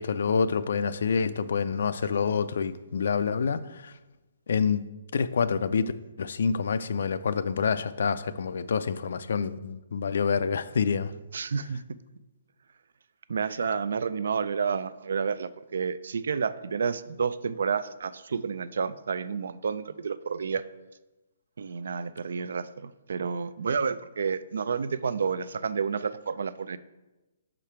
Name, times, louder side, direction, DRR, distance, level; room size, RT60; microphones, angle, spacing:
voice 1, 0.0-3.9 4.5-4.8 5.1-5.9 6.2-11.1, left 6 dB, 70° left, 14 dB, 0.3 m, -27 dB
voice 2, 11.3-11.8 13.3-20.6 21.6-26.8, right 6 dB, 75° right, 15 dB, 0.3 m, -30 dB
5.8 x 5.0 x 4.3 m, 1.1 s
hypercardioid pair, 155°, 0 cm